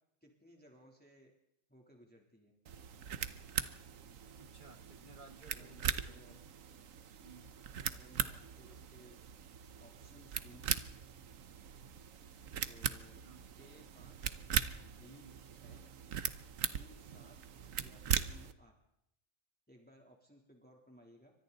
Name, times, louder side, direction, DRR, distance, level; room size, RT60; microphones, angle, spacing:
voice 1, 0.2-1.3 1.7-2.5 5.4-6.4 7.6-9.1 9.8-10.6 12.6-13.2 13.6-14.3 14.9-15.3 15.5-15.8 16.6-17.3 17.8-18.8 19.7-21.3, equal, 5° left, 0 dB, 3.2 m, -61 dB
sound 1, 2.7-18.5, right 8 dB, 90° right, 1.4 m, -40 dB
voice 2, 4.4-6.5 7.2-7.5 13.2-13.4 15.1-15.3, right 3 dB, 40° right, 7 dB, 1.9 m, -58 dB
28.5 x 24.5 x 4.1 m, 0.79 s
omnidirectional pair, 1.3 m